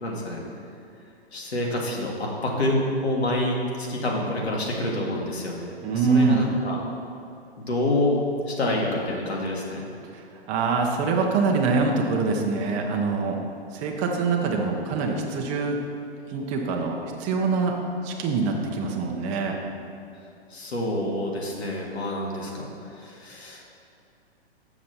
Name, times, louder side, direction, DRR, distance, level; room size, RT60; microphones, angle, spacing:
voice 1, 0.0-0.4 1.3-6.8 7.6-8.2 8.5-9.9 20.5-23.6, left 1 dB, 70° left, -2 dB, 1.8 m, -27 dB
voice 2, 5.8-6.4 10.1-13.4 13.7-15.8 16.3-17.8 18.0-19.6, right 4 dB, 20° right, 1 dB, 0.7 m, -24 dB
7.3 x 5.9 x 4.1 m, 2.6 s
figure-of-eight pair, 120°, 33 cm